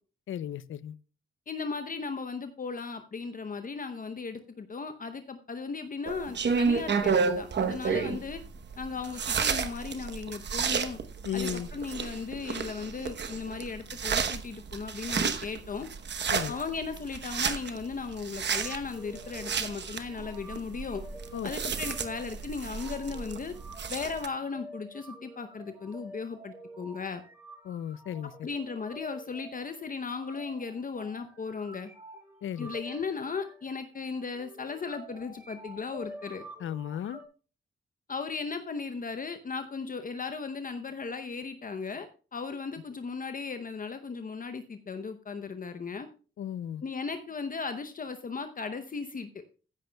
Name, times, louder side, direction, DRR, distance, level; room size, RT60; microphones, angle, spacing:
voice 1, 0.3-1.0 11.2-11.7 16.3-16.6 21.3-21.5 27.6-28.5 32.4-32.8 36.6-37.2 46.4-46.8, left 10 dB, 70° left, 0.5 m, -35 dB
voice 2, 1.5-8.4 8.8-11.0 11.3-15.9 16.5-21.0 21.4-23.5 23.9-27.2 28.4-31.9 32.6-36.5 38.1-46.1 46.8-49.6, left 4 dB, 40° left, 0.7 m, -36 dB
sound 1, 6.1-24.3, right 6 dB, 55° right, 0.9 m, -32 dB
sound 2, 18.5-37.2, right 1 dB, 10° right, 5.7 m, -49 dB
14.5 x 10.5 x 2.2 m
cardioid pair, 80°, 21 cm